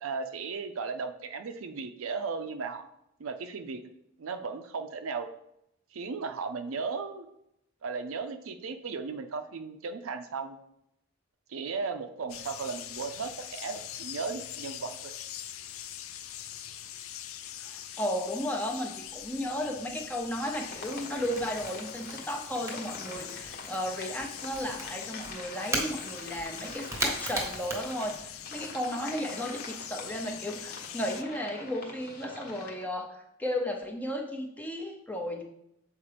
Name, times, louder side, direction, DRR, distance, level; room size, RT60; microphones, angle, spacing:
voice 1, 0.0-2.8 3.2-3.8 4.2-5.3 5.9-7.3 7.8-10.6 11.5-15.1, right 4 dB, 70° right, 7 dB, 0.5 m, -36 dB
sound 1, 12.3-31.2, left 11 dB, 70° left, 0.4 m, -43 dB
voice 2, 17.6-35.4, equal, 10° left, 2 dB, 0.6 m, -34 dB
Crackle / Crack, 19.1-28.6, right 1 dB, 15° right, 1.0 m, -39 dB
sound 2, 20.5-32.8, left 2 dB, 45° left, 1.0 m, -46 dB
7.2 x 4.6 x 3.3 m, 0.80 s
head